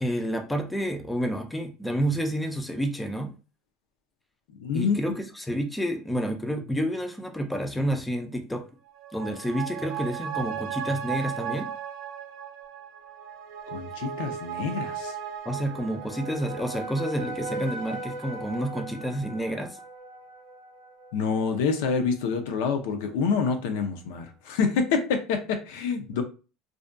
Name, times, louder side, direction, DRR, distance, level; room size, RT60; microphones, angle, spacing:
voice 1, 0.0-3.3 4.7-8.6 9.1-11.7 15.5-19.8, equal, 5° left, 0.3 m, -29 dB
voice 2, 4.6-5.2 13.7-15.1 21.1-26.2, left 5 dB, 85° left, 0.5 m, -27 dB
sound 1, 8.9-21.7 22.1-22.2, right 6 dB, 75° right, 0.5 m, -36 dB
2.4 x 2.2 x 2.4 m
cardioid pair, 170°, 0 cm